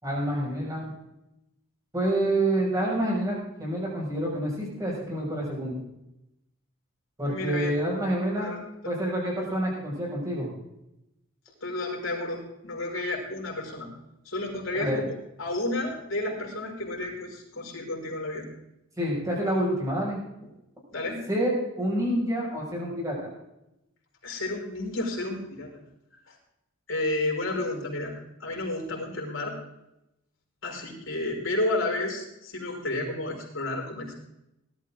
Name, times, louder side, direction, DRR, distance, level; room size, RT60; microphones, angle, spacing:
voice 1, 0.0-0.9 1.9-5.8 7.2-8.5 8.9-10.5 14.7-15.0 19.0-20.2 21.3-21.5 21.8-23.3, right 1 dB, 15° right, -4 dB, 6.1 m, -28 dB
voice 2, 7.2-7.7 8.4-8.6 8.8-8.9 11.6-13.9 14.3-15.1 15.4-18.5 20.9-21.2 24.2-25.7 26.3-26.4 26.9-29.6 30.6-34.1, left 2 dB, 70° left, -1 dB, 5.4 m, -31 dB
19.5 x 12.5 x 3.8 m, 0.86 s
head